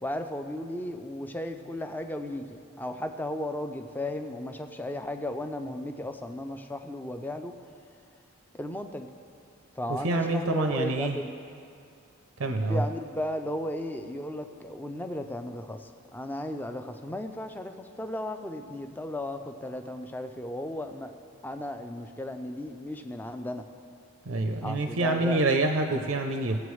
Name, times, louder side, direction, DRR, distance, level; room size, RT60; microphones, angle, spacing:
voice 1, 0.0-7.5 8.5-9.1 9.7-11.3 12.7-21.1 21.4-23.6 24.6-25.5, left 1 dB, 10° left, 6 dB, 0.4 m, -35 dB
voice 2, 9.9-11.2 12.4-12.8 24.3-26.6, right 2 dB, 70° right, 5 dB, 0.6 m, -27 dB
18.5 x 7.6 x 3.2 m, 2.5 s
head